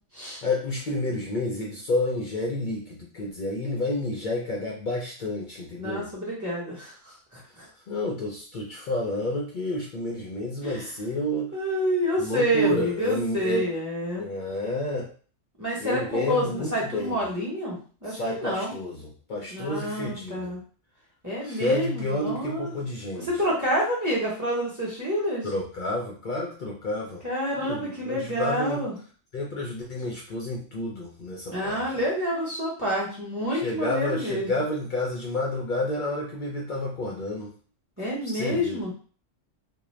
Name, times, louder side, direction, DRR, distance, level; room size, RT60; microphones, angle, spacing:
voice 1, 0.4-6.1 7.9-11.5 12.2-13.7 14.1-15.1 15.8-17.2 18.1-20.5 21.4-23.3 25.4-27.2 27.6-28.8 29.3-31.8 33.5-37.5 38.2-38.8, left 1 dB, 55° left, -2 dB, 0.5 m, -30 dB
voice 2, 5.8-7.7 10.6-10.9 11.5-14.2 15.6-18.7 19.5-20.6 21.2-22.7 23.1-25.5 27.2-28.9 31.5-34.6 38.0-38.9, equal, 15° right, -6 dB, 0.9 m, -28 dB
2.4 x 2.2 x 3.1 m, 0.41 s
omnidirectional pair, 1.3 m